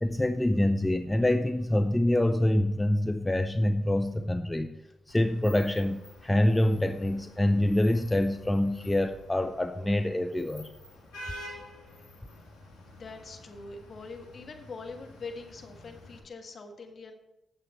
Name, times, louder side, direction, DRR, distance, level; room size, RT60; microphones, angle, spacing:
voice 1, 0.0-4.7 5.1-10.7, left 1 dB, 15° left, 9 dB, 0.6 m, -26 dB
Vehicle horn car horn honking / Traffic noise roadway noise, 5.1-16.2, left 1 dB, 85° left, 1.8 m, -49 dB
voice 2, 12.9-17.1, left 3 dB, 55° left, 4 dB, 1.4 m, -43 dB
9.1 x 7.3 x 4.3 m, 0.89 s
hypercardioid pair, 40°, 0 cm